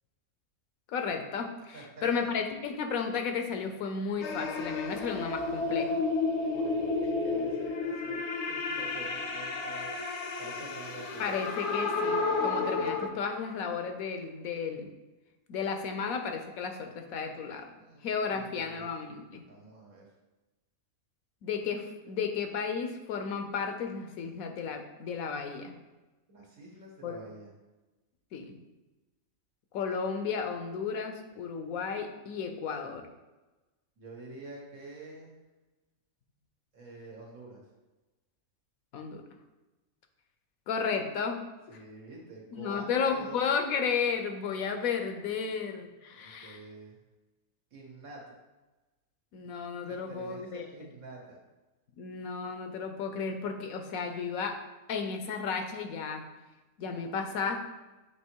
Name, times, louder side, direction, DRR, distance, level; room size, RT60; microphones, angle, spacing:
voice 1, 0.9-6.1 11.2-14.9 15.5-17.7 18.0-19.4 21.4-25.7 27.0-27.2 28.3-28.6 29.7-33.1 38.9-39.2 40.7-41.4 42.5-46.6 49.3-50.9 52.0-54.6 54.9-56.2 56.8-57.6, left 6 dB, 80° left, 6 dB, 1.1 m, -33 dB
voice 2, 1.7-2.3 6.4-11.4 17.7-18.9 19.5-20.0 26.3-27.5 34.0-35.3 36.7-37.6 41.7-43.3 45.4-45.6 46.1-47.0 47.7-48.3 49.8-51.4, right 2 dB, 75° right, -2 dB, 1.9 m, -47 dB
sound 1, 4.2-13.1, left 3 dB, 60° left, 0.9 m, -31 dB
7.8 x 2.9 x 4.5 m, 1.1 s
omnidirectional pair, 1.5 m